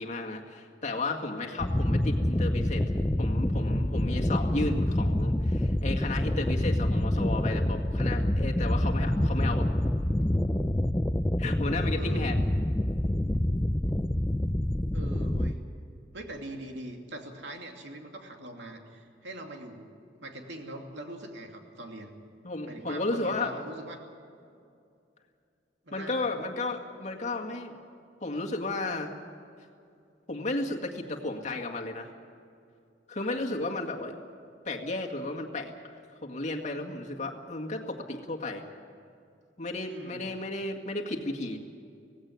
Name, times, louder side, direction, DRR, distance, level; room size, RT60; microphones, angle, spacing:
voice 1, 0.0-9.7 11.4-12.4 22.4-23.6 25.9-27.7 28.2-29.1 30.3-32.1 33.1-34.1 34.7-35.9 36.2-38.6 39.6-41.6, left 2 dB, 45° left, 1 dB, 2.0 m, -33 dB
sound 1, 1.6-15.5, left 1 dB, 15° left, 0.5 m, -27 dB
voice 2, 11.9-12.4 14.9-15.6 16.1-19.9 20.2-22.1 22.6-24.0 25.8-26.3 39.9-40.3, right 1 dB, 90° right, 2 dB, 2.7 m, -42 dB
17.5 x 16.5 x 9.6 m, 2.4 s
head